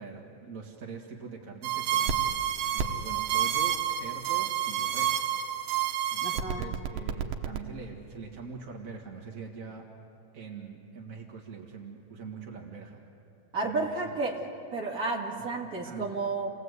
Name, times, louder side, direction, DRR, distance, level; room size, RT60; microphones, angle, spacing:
voice 1, 0.0-5.3 6.1-9.9 10.3-13.0 13.6-14.1 15.3-16.2, right 5 dB, 45° right, 0 dB, 1.1 m, -43 dB
sound 1, 1.6-7.6, right 10 dB, 75° right, 2.6 m, -29 dB
voice 2, 6.2-6.6 13.5-16.5, right 3 dB, 30° right, -1 dB, 2.2 m, -32 dB
29.0 x 19.0 x 8.1 m, 2.9 s
omnidirectional pair, 4.2 m